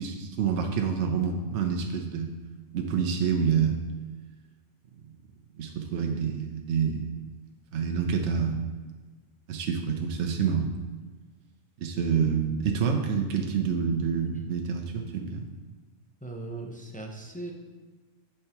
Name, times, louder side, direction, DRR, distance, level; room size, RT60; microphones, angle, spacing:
voice 1, 0.0-2.3 2.7-3.8 5.0-5.1 5.6-7.1 7.7-8.7 9.5-10.7 11.8-15.4, right 6 dB, 65° right, 3 dB, 0.9 m, -27 dB
voice 2, 16.2-17.5, right 2 dB, 10° left, 0 dB, 0.4 m, -38 dB
9.8 x 4.6 x 3.0 m, 1.4 s
omnidirectional pair, 1.4 m